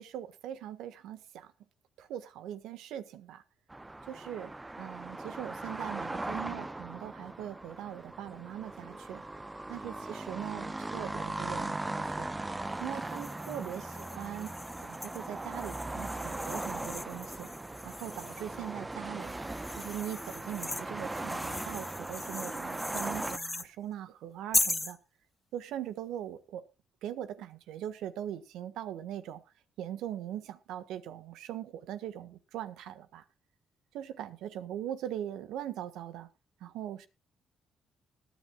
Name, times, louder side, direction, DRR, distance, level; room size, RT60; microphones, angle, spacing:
voice 1, 0.0-1.5 2.0-3.4 4.1-4.5 4.8-9.2 9.7-12.3 12.8-14.5 14.8-17.5 17.8-19.4 19.8-25.0 25.5-26.6 27.0-29.4 29.8-33.2 33.9-36.3 36.6-37.1, right 11 dB, 90° right, 1.4 m, -41 dB
sound 1, 3.7-23.4, right 2 dB, 15° right, 0.8 m, -39 dB
sound 2, 13.0-18.6 19.2-23.7 24.5-25.0, left 2 dB, 15° left, 0.6 m, -38 dB
20.0 x 10.5 x 2.3 m
cardioid pair, 90°, 0 cm